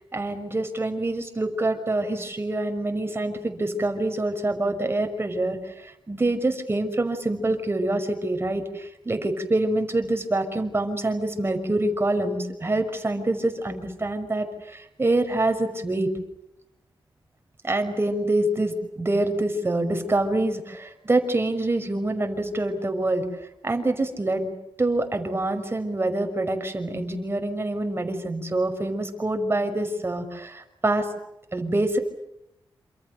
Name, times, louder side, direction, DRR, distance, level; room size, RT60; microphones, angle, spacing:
voice 1, 0.1-16.1 17.6-23.3 23.6-24.5 24.8-31.1 31.5-32.0, right 2 dB, 30° right, 6 dB, 5.9 m, -26 dB
29.0 x 27.5 x 6.9 m, 0.82 s
wide cardioid pair, 90°, 8 cm